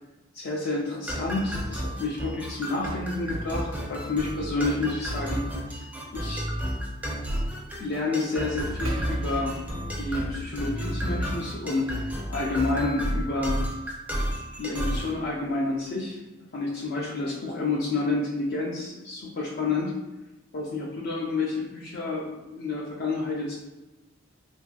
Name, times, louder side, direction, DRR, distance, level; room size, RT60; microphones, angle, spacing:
voice 1, 0.3-5.4 6.1-6.4 7.8-9.6 10.0-13.6 14.6-16.2 16.5-19.9 20.5-23.5, left 3 dB, 50° left, -4 dB, 0.4 m, -29 dB
sound 1, 1.1-15.1, equal, 10° right, 0.4 m, -32 dB
Percussion, 8.8-13.6, right 1 dB, 75° right, 0.5 m, -38 dB
3.0 x 2.6 x 2.3 m, 1.0 s
head